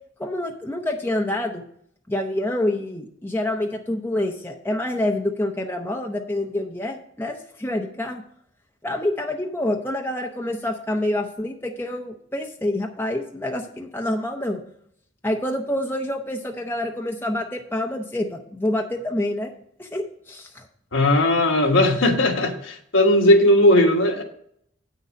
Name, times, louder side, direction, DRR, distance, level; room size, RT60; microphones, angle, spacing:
voice 1, 0.2-1.6 2.1-8.2 8.8-14.6 15.2-19.5 19.8-20.7, left 1 dB, 10° left, 2 dB, 0.7 m, -27 dB
voice 2, 20.9-24.2, left 1 dB, 70° left, 2 dB, 1.4 m, -17 dB
8.2 x 6.7 x 5.1 m, 0.68 s
head